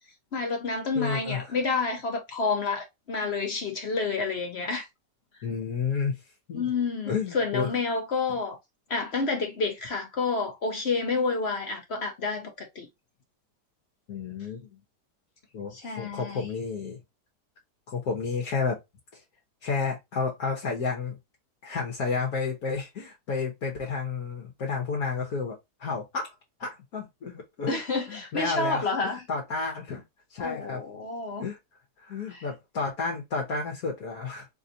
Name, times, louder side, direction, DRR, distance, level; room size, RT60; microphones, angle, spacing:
voice 1, 0.3-4.9 6.5-8.6 8.9-12.9 15.7-16.4 27.7-29.2 30.4-31.5 32.3-32.4, left 4 dB, 45° left, 1.0 m, -29 dB
voice 2, 0.9-1.6 5.4-6.2 6.5-6.6 7.1-7.7 14.1-14.8 15.5-17.0 17.9-18.8 19.1-19.2 19.6-21.2 21.6-26.3 26.6-27.8 28.1-30.0 30.3-30.8 31.4-31.6 32.0-34.5, left 5 dB, 65° left, 1.4 m, -31 dB
3.9 x 3.5 x 2.6 m
omnidirectional pair, 1.8 m